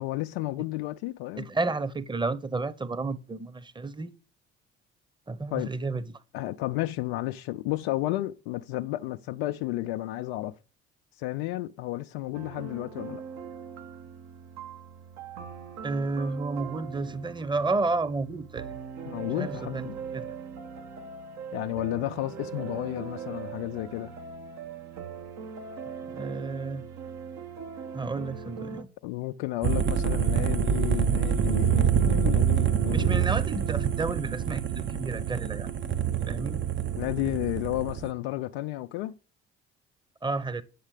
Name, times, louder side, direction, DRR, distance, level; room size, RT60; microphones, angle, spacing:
voice 1, 0.0-1.5 5.5-5.7 6.3-10.5 11.2-13.2 19.1-19.9 21.5-24.1 29.0-33.3 37.0-39.1, left 16 dB, 70° left, 0.6 m, -32 dB
voice 2, 1.3-4.1 5.3-6.2 15.8-18.8 19.3-20.3 26.1-26.8 27.9-28.9 32.9-35.7 36.3-36.6 40.2-40.6, right 3 dB, 15° right, 1.1 m, -31 dB
sound 1, 12.3-28.8, right 6 dB, 60° right, 1.5 m, -41 dB
sound 2, 29.6-38.1, right 8 dB, 35° right, 1.0 m, -26 dB
10.0 x 7.2 x 5.0 m
hypercardioid pair, 55°, 31 cm